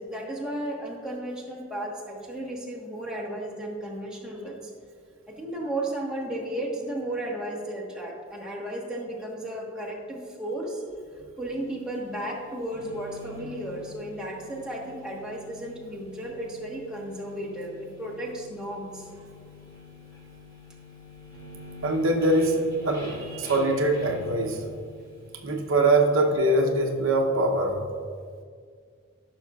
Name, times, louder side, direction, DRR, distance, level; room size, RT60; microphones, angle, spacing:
voice 1, 0.0-4.7 5.3-10.8 11.4-19.1, right 1 dB, 5° right, -4 dB, 1.2 m, -34 dB
sound 1, 11.5-26.9, left 3 dB, 20° left, 2.1 m, -46 dB
voice 2, 21.8-24.6 25.4-27.8, right 2 dB, 70° right, 2 dB, 0.8 m, -23 dB
14.0 x 6.1 x 2.4 m, 2.1 s
head